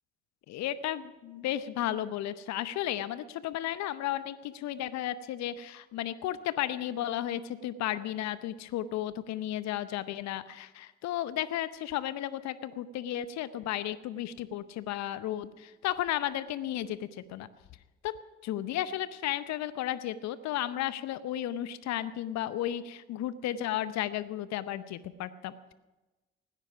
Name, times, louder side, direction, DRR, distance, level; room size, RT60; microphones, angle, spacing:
voice 1, 0.5-17.5 18.0-18.2 18.4-25.7, left 12 dB, 65° left, 16 dB, 0.7 m, -34 dB
17.5 x 9.9 x 5.9 m, 1.1 s
hypercardioid pair, 45°, 30 cm